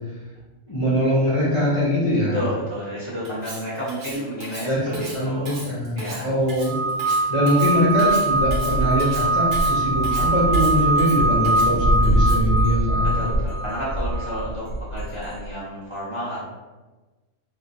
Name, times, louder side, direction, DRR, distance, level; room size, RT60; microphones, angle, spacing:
voice 1, 0.7-2.4 4.6-13.3, equal, 35° left, -9 dB, 0.5 m, -22 dB
voice 2, 2.3-5.6 6.0-6.3 13.0-16.4, equal, 30° right, -9 dB, 0.5 m, -31 dB
Cutlery silverware, 3.3-12.6, right 2 dB, 80° right, 1.1 m, -39 dB
sound 1, 6.6-14.4, right 2 dB, 65° left, 0.9 m, -23 dB
sound 2, 8.1-15.5, right 1 dB, 85° left, 1.2 m, -25 dB
3.0 x 2.2 x 2.5 m, 1.2 s
omnidirectional pair, 1.3 m